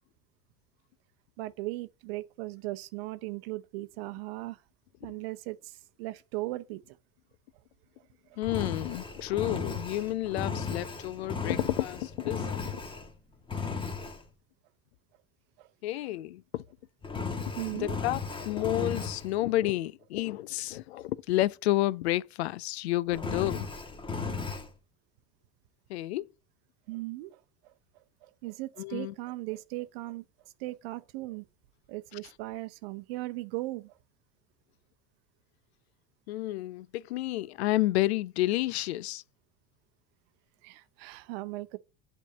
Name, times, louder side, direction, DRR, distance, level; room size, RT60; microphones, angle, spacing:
voice 1, 1.4-4.6 5.0-6.8 8.3-8.4 9.2-9.3 15.6-15.7 17.6-18.0 26.9-27.7 28.2-30.2 30.6-31.5 31.9-33.9 40.6-41.8, right 19 dB, 70° right, 0.7 m, -38 dB
voice 2, 8.4-12.7 15.8-16.6 17.3-23.7 25.9-26.2 28.8-29.1 36.3-39.2, left 16 dB, 85° left, 0.5 m, -30 dB
Engine, 8.4-13.1 13.5-14.2 17.0-19.3 23.1-24.7, left 4 dB, 15° left, 1.3 m, -35 dB
8.4 x 3.6 x 6.8 m
hypercardioid pair, 95°, 31 cm